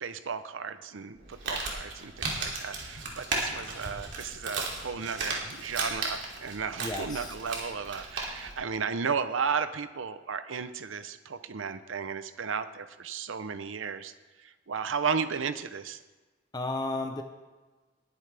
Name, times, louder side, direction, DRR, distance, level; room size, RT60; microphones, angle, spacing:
voice 1, 0.0-14.1 14.4-16.0, right 6 dB, 80° right, 12 dB, 0.7 m, -34 dB
Crumpling crinkling, 1.2-8.6, right 3 dB, 65° right, 2.8 m, -35 dB
voice 2, 6.8-7.3 16.5-17.2, left 2 dB, 20° left, 5 dB, 0.7 m, -33 dB
19.5 x 10.5 x 3.4 m, 1.3 s
head